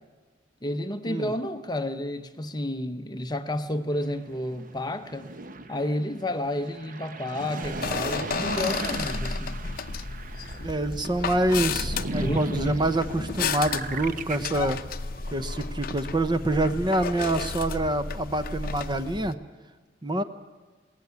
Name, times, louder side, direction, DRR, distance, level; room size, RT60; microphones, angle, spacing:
voice 1, 0.6-5.3 5.7-9.7 12.1-12.8, left 1 dB, 25° left, 8 dB, 0.9 m, -31 dB
sound 1, 3.9-16.1 16.7-16.8, right 2 dB, 50° right, 0.9 m, -37 dB
sound 2, 7.6-19.3, left 5 dB, 55° left, 0.7 m, -33 dB
voice 2, 10.6-14.8 15.3-19.4 20.0-20.2, right 1 dB, 25° right, 10 dB, 0.9 m, -26 dB
21.0 x 17.5 x 9.5 m, 1.4 s
head